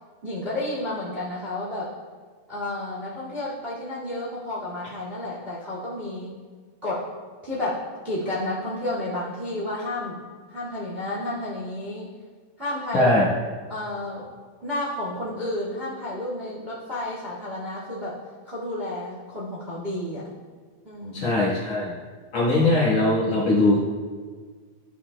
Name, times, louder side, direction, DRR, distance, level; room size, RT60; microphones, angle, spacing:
voice 1, 0.2-1.9 2.5-6.3 6.8-7.1 7.4-10.2 10.5-12.1 12.6-13.1 13.7-14.2 14.6-18.1 18.4-20.3 20.8-21.3, left 1 dB, 20° right, -6 dB, 1.8 m, -31 dB
voice 2, 12.9-13.3 21.1-22.0 22.3-23.8, left 2 dB, 55° left, -7 dB, 2.3 m, -20 dB
15.0 x 8.5 x 2.3 m, 1.6 s
omnidirectional pair, 4.4 m